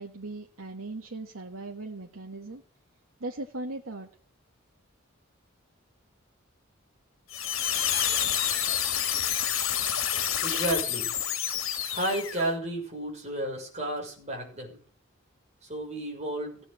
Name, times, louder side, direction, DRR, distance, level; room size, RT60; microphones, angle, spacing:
voice 1, 0.0-2.6 3.2-4.1, right 2 dB, 80° right, 2 dB, 1.7 m, -38 dB
sound 1, 7.3-12.5, left 9 dB, 80° left, 2.3 m, -28 dB
voice 2, 10.4-11.1 11.9-14.8 15.7-16.6, right 1 dB, 35° right, 0 dB, 6.5 m, -32 dB
16.0 x 9.7 x 7.7 m, 0.42 s
head